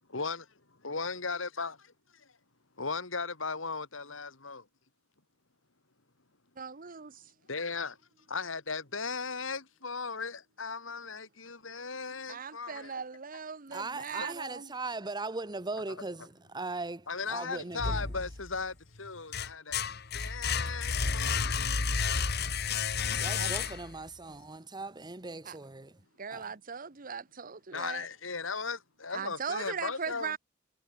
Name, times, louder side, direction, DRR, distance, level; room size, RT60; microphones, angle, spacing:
voice 1, 0.1-0.5 0.8-2.3 2.8-4.6 7.5-8.0 8.3-13.0 14.2-14.3 15.9-16.0 17.1-19.8 20.1-21.7 27.7-30.3, left 4 dB, 80° left, 3.0 m, -37 dB
voice 2, 6.6-7.3 12.3-14.7 23.3-23.5 25.4-25.6 26.2-28.1 29.1-30.4, right 6 dB, 45° right, 1.0 m, -39 dB
voice 3, 13.7-18.0 23.0-25.9 26.3-26.4, right 3 dB, 20° right, 1.2 m, -39 dB
sound 1, 17.8-18.6 19.1-24.1, left 5 dB, 55° left, 1.8 m, -31 dB
head